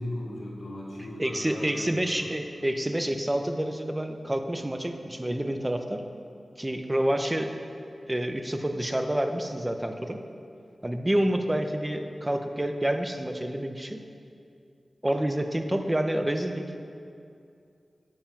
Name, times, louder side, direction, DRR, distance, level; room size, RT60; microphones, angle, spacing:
voice 1, 0.0-2.3, left 1 dB, 80° left, -4 dB, 1.7 m, -37 dB
voice 2, 1.2-6.0 6.6-7.5 8.1-10.2 10.8-14.0 15.0-16.6, right 1 dB, 20° right, 6 dB, 0.7 m, -28 dB
8.8 x 5.6 x 5.8 m, 2.5 s
cardioid pair, 60°, 0 cm